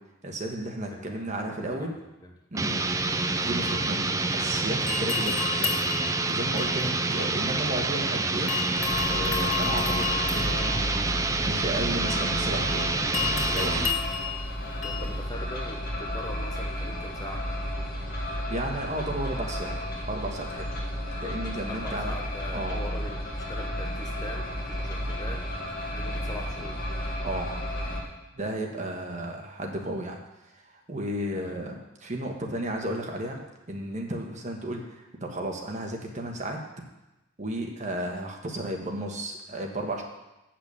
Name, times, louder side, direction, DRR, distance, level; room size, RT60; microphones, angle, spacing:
voice 1, 0.2-1.9 2.5-2.8 3.4-5.7 6.3-8.5 9.1-10.9 11.4-13.0 13.5-13.8 18.5-19.8 20.1-20.7 21.2-22.1 22.5-22.8 27.2-27.5 28.3-30.2 30.6-33.4 33.7-36.6 37.4-40.0, right 1 dB, 35° right, 1 dB, 1.3 m, -33 dB
voice 2, 0.9-2.0 2.2-2.3 2.7-2.9 14.8-17.5 21.7-25.4 25.9-26.8 31.3-31.6, left 1 dB, 20° left, 1 dB, 0.9 m, -42 dB
sound 1, 2.5-14.0, right 3 dB, 15° right, 0.4 m, -27 dB
sound 2, 3.0-4.5 4.9-8.1 8.5-15.3, left 7 dB, 85° left, 2.1 m, -34 dB
sound 3, 8.8-28.0, equal, 50° left, 2.0 m, -33 dB
8.4 x 5.9 x 7.0 m, 0.98 s
head